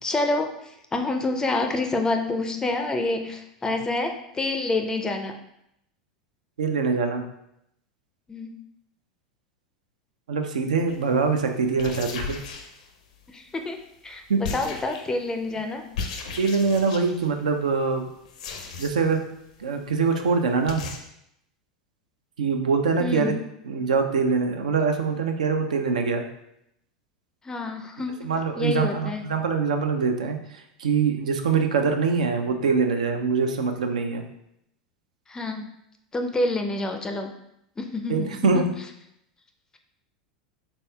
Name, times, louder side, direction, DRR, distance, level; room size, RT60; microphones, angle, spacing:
voice 1, 0.0-5.3 8.3-8.6 13.3-15.8 23.0-23.4 27.4-28.2 28.6-29.2 35.3-35.7 36.1-37.3 37.8-38.6, left 2 dB, 15° left, 5 dB, 0.4 m, -28 dB
voice 2, 6.6-7.2 10.3-12.4 14.3-14.4 16.4-18.0 18.8-19.2 19.6-20.9 22.4-23.3 23.7-26.2 28.2-30.4 30.8-34.2 38.1-38.7, right 5 dB, 85° right, 5 dB, 0.4 m, -23 dB
sound 1, 10.9-11.1 11.7-13.2 14.4-15.3 15.9-17.3 18.3-19.2 19.5-19.6 19.9-20.0 20.2-20.3 20.7-21.0, left 5 dB, 75° left, 0.5 m, -36 dB
4.1 x 3.4 x 2.2 m, 0.78 s
hypercardioid pair, 95°, 4 cm